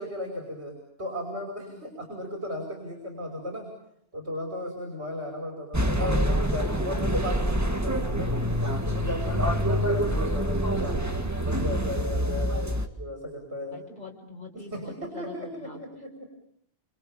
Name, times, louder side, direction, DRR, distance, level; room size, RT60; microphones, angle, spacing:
voice 1, 0.0-3.7 4.1-8.3 8.8-13.8 14.5-16.1, left 1 dB, 90° right, 1 dB, 6.0 m, -35 dB
sound 1, 5.7-12.9, equal, 15° right, 1.9 m, -26 dB
voice 2, 13.7-15.8, left 3 dB, 45° left, -1 dB, 5.8 m, -44 dB
29.5 x 27.0 x 7.1 m, 0.74 s
omnidirectional pair, 1.1 m